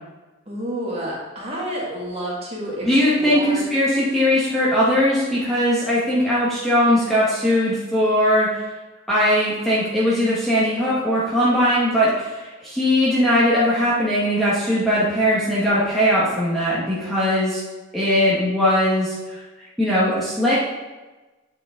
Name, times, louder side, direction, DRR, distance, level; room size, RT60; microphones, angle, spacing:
voice 1, 0.5-3.7, equal, 30° right, -5 dB, 1.8 m, -30 dB
voice 2, 2.8-8.5 9.1-17.6 17.9-19.4 19.8-20.5, equal, ahead, -9 dB, 1.1 m, -19 dB
8.3 x 4.7 x 3.6 m, 1.2 s
head